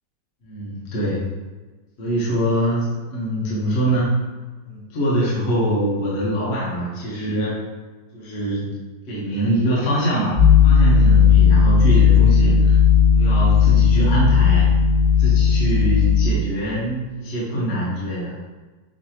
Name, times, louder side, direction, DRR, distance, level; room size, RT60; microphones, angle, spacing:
voice 1, 0.4-1.3 2.0-4.1 4.7-7.5 8.1-8.7 9.1-12.8 13.1-14.7 15.2-18.5, right 1 dB, 45° left, -7 dB, 1.1 m, -24 dB
sound 1, 10.4-16.2, left 6 dB, 45° right, 1.5 m, -14 dB
5.9 x 3.0 x 2.7 m, 1.3 s
omnidirectional pair, 2.0 m